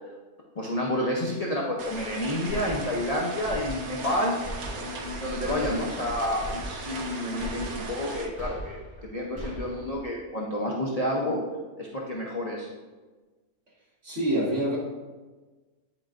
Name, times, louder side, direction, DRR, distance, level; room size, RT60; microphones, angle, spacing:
voice 1, 0.5-4.4 4.7-11.4 11.8-12.7, left 1 dB, 40° left, -3 dB, 0.6 m, -29 dB
sound 1, 1.8-8.3, right 3 dB, 70° right, 1.2 m, -38 dB
sound 2, 2.5-3.2 3.5-4.2 4.4-5.1 5.4-6.1 6.4-7.1 7.4-8.1 8.4-9.1 9.4-10.0, left 1 dB, 15° right, 1.8 m, -39 dB
voice 2, 14.0-14.8, right 1 dB, 50° right, -6 dB, 2.1 m, -26 dB
9.9 x 4.4 x 2.5 m, 1.3 s
omnidirectional pair, 1.6 m